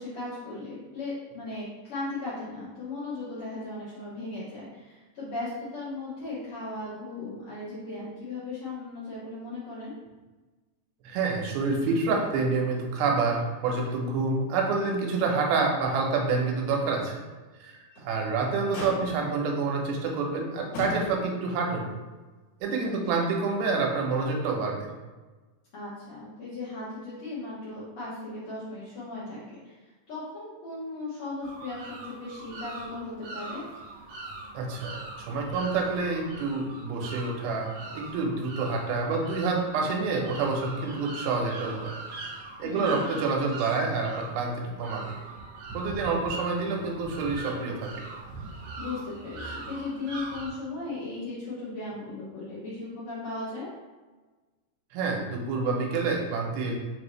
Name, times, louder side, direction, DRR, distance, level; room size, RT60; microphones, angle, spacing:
voice 1, 0.0-9.9 22.8-23.1 25.7-29.7 30.1-33.6 42.6-43.0 48.8-53.7, left 2 dB, 80° left, -10 dB, 1.2 m, -37 dB
voice 2, 11.0-17.2 17.6-21.9 22.6-24.9 34.5-42.3 42.6-45.0 45.7-47.9 54.9-56.8, right 4 dB, 90° right, 0 dB, 2.6 m, -28 dB
Motor vehicle (road), 11.8-12.4 12.7-12.8 13.3-14.3 14.7-14.8 15.4-15.5 17.7-18.2 18.7-19.4 20.2-20.3 20.7-21.5 22.6-22.7, left 1 dB, 60° left, 2.3 m, -39 dB
sound 1, 31.4-50.5, right 3 dB, 65° right, 2.4 m, -41 dB
5.6 x 2.6 x 3.1 m, 1.3 s
omnidirectional pair, 4.2 m